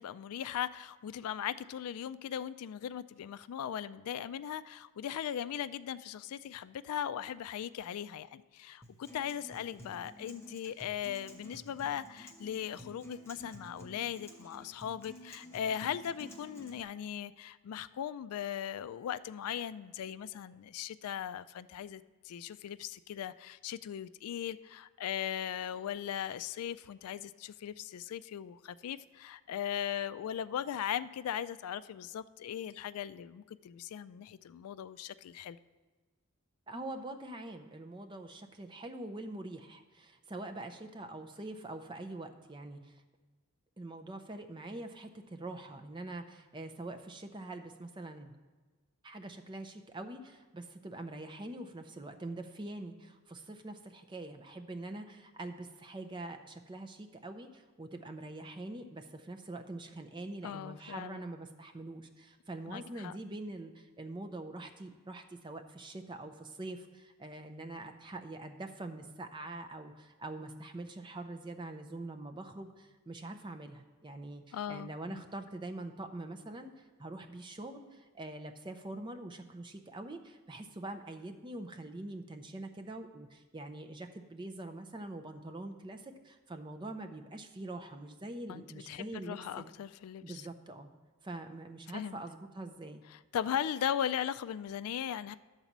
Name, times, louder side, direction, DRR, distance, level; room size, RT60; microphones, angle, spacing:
voice 1, 0.0-35.6 60.4-61.2 62.7-63.1 74.5-75.2 88.5-90.5 91.9-92.2 93.1-95.4, left 9 dB, 80° left, 16 dB, 0.3 m, -38 dB
Acoustic guitar, 8.8-16.8, equal, 10° left, 0.9 m, -52 dB
voice 2, 36.7-43.0 43.8-48.3 49.0-89.7 90.2-90.9 91.2-93.0, right 2 dB, 20° right, 6 dB, 0.5 m, -44 dB
11.0 x 4.0 x 7.2 m, 1.3 s
head